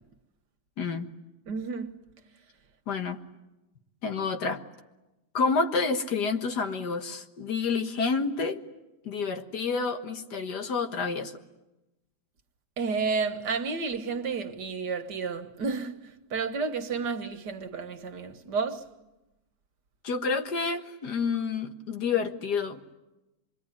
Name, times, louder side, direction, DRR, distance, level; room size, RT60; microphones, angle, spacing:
voice 1, 1.5-2.0 12.8-15.9 16.3-18.8, right 4 dB, 85° right, 2.0 m, -31 dB
voice 2, 2.9-3.2 4.0-4.6 5.3-8.6 9.1-11.4 20.0-22.8, left 4 dB, 80° left, 2.1 m, -29 dB
26.0 x 22.0 x 9.9 m
omnidirectional pair, 1.8 m